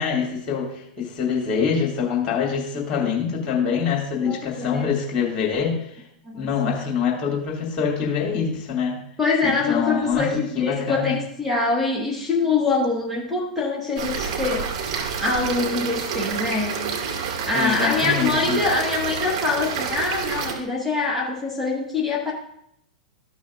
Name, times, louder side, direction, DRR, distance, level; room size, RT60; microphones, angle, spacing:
voice 1, 0.0-6.0 6.3-9.0 9.4-11.2 17.5-18.6, left 6 dB, 30° left, -1 dB, 2.4 m, -25 dB
voice 2, 4.2-4.8 6.3-6.5 9.2-14.7 15.2-16.8 17.4-22.3, left 3 dB, ahead, -3 dB, 1.5 m, -24 dB
sound 1, 14.0-20.5, right 6 dB, 50° right, 2.1 m, -28 dB
13.5 x 6.1 x 2.5 m, 0.74 s
figure-of-eight pair, 95°, 4 cm